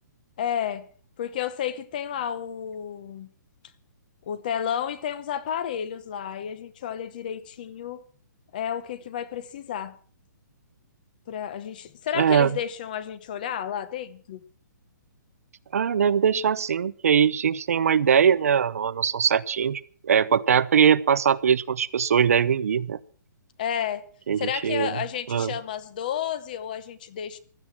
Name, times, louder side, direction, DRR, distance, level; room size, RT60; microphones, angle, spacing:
voice 1, 0.4-0.8 1.2-3.3 4.3-8.0 8.5-10.0 11.3-14.4 23.6-24.0 24.4-27.4, left 9 dB, 25° left, 17 dB, 0.8 m, -31 dB
voice 2, 12.1-12.5 15.7-23.0 24.3-25.0 25.3-25.5, right 7 dB, 50° right, 17 dB, 0.7 m, -21 dB
16.0 x 12.0 x 6.0 m, 0.43 s
hypercardioid pair, 180°, 10 cm